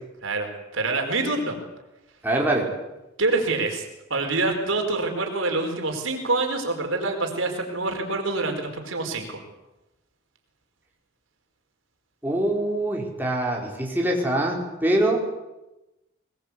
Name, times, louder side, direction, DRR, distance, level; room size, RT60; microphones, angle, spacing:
voice 1, 0.2-1.6 3.2-3.8 4.1-9.4, right 3 dB, 85° right, 3 dB, 4.5 m, -26 dB
voice 2, 2.2-2.6 12.2-15.2, right 1 dB, 10° right, -1 dB, 4.7 m, -24 dB
22.0 x 21.5 x 8.3 m, 0.98 s
head